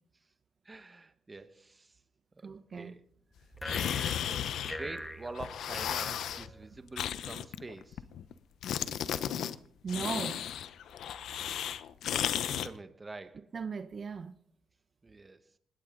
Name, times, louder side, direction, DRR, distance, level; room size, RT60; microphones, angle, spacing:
voice 1, 0.6-1.9 2.4-3.0 3.8-8.0 12.1-13.5 15.0-15.4, right 3 dB, 25° right, 1.6 m, -46 dB
voice 2, 2.4-3.0 9.8-10.4 11.6-11.7 13.5-14.4, right 5 dB, 45° right, 1.0 m, -38 dB
sound 1, 3.6-5.1 5.3-6.5 7.0-8.3 8.6-9.5 9.9-12.7, left 10 dB, 75° left, 0.9 m, -34 dB
sound 2, 3.6-7.0, equal, 10° left, 1.9 m, -43 dB
20.5 x 17.0 x 4.0 m
cardioid pair, 90°, 0 cm